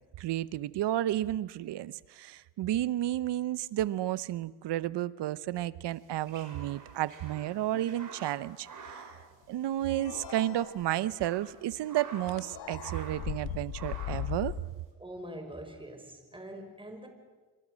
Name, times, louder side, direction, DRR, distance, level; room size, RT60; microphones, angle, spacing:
voice 1, 0.2-9.1 9.5-14.5, right 13 dB, 60° right, 18 dB, 0.9 m, -32 dB
sound 1, 6.0-10.0 10.3-10.4 10.9-12.5 12.8-13.4 13.7-14.4, right 4 dB, 45° right, 5.5 m, -48 dB
sound 2, 9.9-11.2 12.3-13.6, left 7 dB, 60° left, 2.2 m, -47 dB
sound 3, 10.8-10.9 12.3-12.5 13.0-14.6, left 15 dB, 90° left, 1.1 m, -36 dB
voice 2, 15.0-17.1, right 1 dB, 10° right, 5 dB, 5.1 m, -44 dB
27.0 x 24.5 x 6.4 m, 1.3 s
cardioid pair, 95°, 45 cm